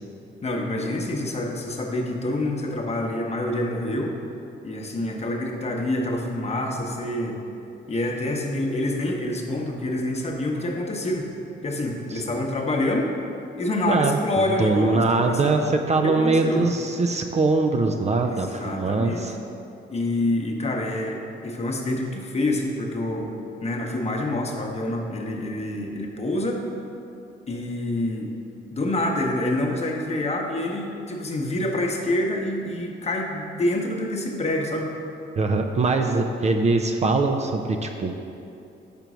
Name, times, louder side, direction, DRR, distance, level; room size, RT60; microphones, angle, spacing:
voice 1, 0.4-4.1 4.6-7.4 7.9-11.3 11.6-13.1 13.6-15.6 16.0-16.6 18.2-19.3 19.9-23.3 23.6-26.7 27.5-28.3 28.7-34.9 36.0-36.2, left 1 dB, 30° left, 1 dB, 0.9 m, -27 dB
voice 2, 13.9-19.4 35.4-38.1, right 3 dB, 35° right, 4 dB, 0.4 m, -22 dB
5.2 x 4.5 x 6.1 m, 2.7 s
cardioid pair, 90°, 20 cm